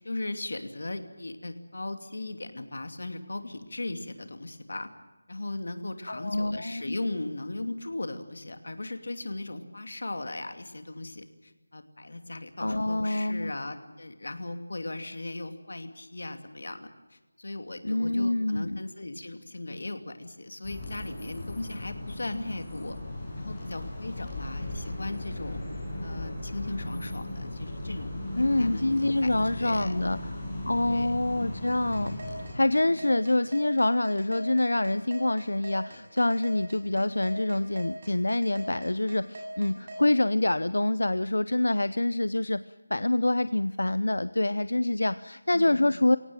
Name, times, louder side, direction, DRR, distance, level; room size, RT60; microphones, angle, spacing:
voice 1, 0.0-4.9 5.3-23.0 23.4-25.6 26.0-28.2 28.6-29.3 29.6-30.0 30.8-31.2 32.8-33.1 45.5-46.0, left 2 dB, 65° left, 8 dB, 2.7 m, -37 dB
voice 2, 6.1-7.0 12.6-13.5 17.8-18.8 28.3-32.2 32.5-42.6 42.9-46.2, left 2 dB, 90° left, 15 dB, 0.7 m, -26 dB
sound 1, 20.6-32.5, left 1 dB, 15° left, 6.4 m, -37 dB
sound 2, 31.7-40.0, right 1 dB, 35° right, 7.2 m, -41 dB
23.5 x 18.0 x 9.0 m, 1.1 s
figure-of-eight pair, 175°, 0 cm